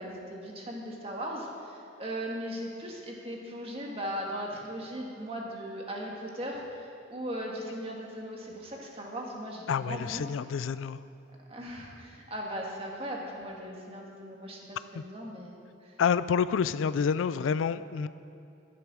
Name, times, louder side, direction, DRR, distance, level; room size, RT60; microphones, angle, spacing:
voice 1, 0.0-10.2 11.5-15.9, equal, 30° right, -1 dB, 1.8 m, -38 dB
voice 2, 9.7-11.0 16.0-18.1, left 6 dB, 80° left, 15 dB, 0.3 m, -28 dB
11.5 x 10.5 x 6.1 m, 2.6 s
head